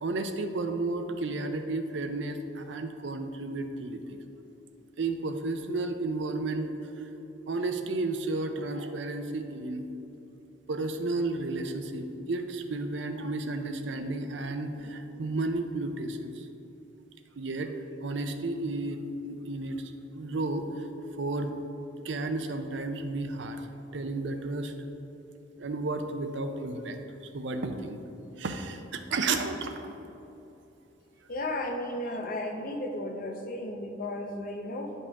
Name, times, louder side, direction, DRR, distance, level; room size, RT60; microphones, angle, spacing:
voice 1, 0.0-4.2 5.0-6.7 7.0-7.1 7.5-9.9 10.7-16.4 17.4-17.7 18.0-20.9 21.2-21.5 22.0-23.6 23.9-24.7 25.6-27.0 27.3-28.0 28.4-29.9, right 2 dB, 70° right, 7 dB, 0.6 m, -32 dB
voice 2, 31.3-34.9, left 1 dB, 45° left, 3 dB, 0.7 m, -34 dB
9.9 x 5.4 x 3.6 m, 2.9 s
head